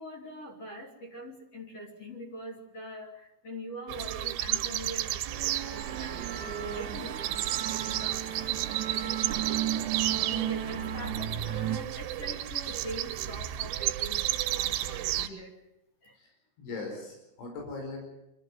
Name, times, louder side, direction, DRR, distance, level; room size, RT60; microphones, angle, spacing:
voice 1, 0.0-15.6 16.0-16.2, equal, 35° left, 1 dB, 3.5 m, -43 dB
sound 1, 3.9-15.3, right 14 dB, 85° right, 3.3 m, -33 dB
sound 2, 5.3-11.8, right 10 dB, 65° right, 1.9 m, -34 dB
voice 2, 16.6-18.1, left 3 dB, 85° left, 1 dB, 7.3 m, -39 dB
24.0 x 14.0 x 9.6 m, 0.87 s
omnidirectional pair, 5.3 m